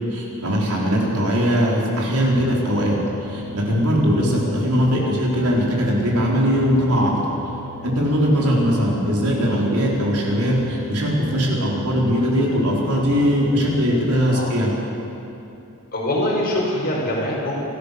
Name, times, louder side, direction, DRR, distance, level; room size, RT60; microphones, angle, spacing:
voice 1, 0.1-7.1 7.8-14.7, equal, 80° right, -3 dB, 4.8 m, -20 dB
sound 1, 2.3-14.1, equal, 60° right, 3.4 m, -38 dB
voice 2, 15.9-17.6, left 1 dB, 45° left, -3 dB, 5.8 m, -24 dB
28.5 x 13.0 x 6.9 m, 2.8 s
head